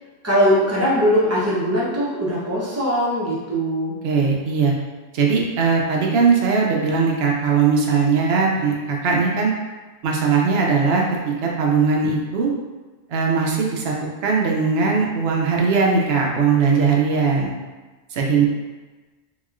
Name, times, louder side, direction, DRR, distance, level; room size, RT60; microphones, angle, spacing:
voice 1, 0.2-3.9, equal, 20° right, -8 dB, 0.5 m, -20 dB
voice 2, 4.0-4.7 5.1-9.5 10.0-12.5 13.1-17.5 18.1-18.5, right 5 dB, 70° right, -1 dB, 0.8 m, -19 dB
2.9 x 2.8 x 2.4 m, 1.2 s
omnidirectional pair, 1.2 m